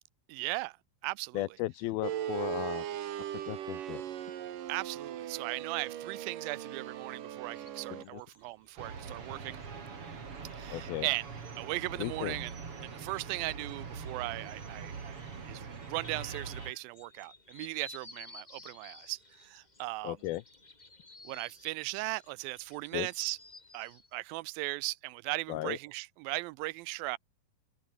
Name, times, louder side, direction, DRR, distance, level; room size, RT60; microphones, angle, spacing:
voice 1, 0.3-0.8 1.0-1.5 4.7-9.6 10.6-11.3 11.6-12.5 12.8-20.2 21.2-23.4 23.7-27.2, right 22 dB, 85° right, 2.3 m, -38 dB
voice 2, 1.3-2.8 3.3-4.0 7.9-8.2 10.7-11.1 12.0-12.4 20.0-20.4 22.9-23.1 25.5-25.8, left 17 dB, 90° left, 2.8 m, -35 dB
sound 1, 2.0-8.0, right 11 dB, 65° right, 3.2 m, -39 dB
sound 2, 7.5-24.1, left 2 dB, 15° left, 1.6 m, -56 dB
sound 3, 8.8-16.7, right 5 dB, 40° right, 3.9 m, -43 dB
omnidirectional pair, 4.2 m